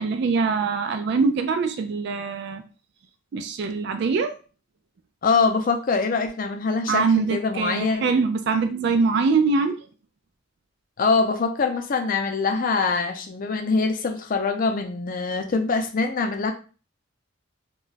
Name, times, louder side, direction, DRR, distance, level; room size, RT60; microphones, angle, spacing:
voice 1, 0.0-2.6 3.3-4.4 6.9-9.8, right 4 dB, 60° right, 7 dB, 0.3 m, -23 dB
voice 2, 5.2-8.1 11.0-16.5, left 4 dB, 50° left, 5 dB, 0.5 m, -24 dB
2.3 x 2.1 x 3.9 m, 0.36 s
head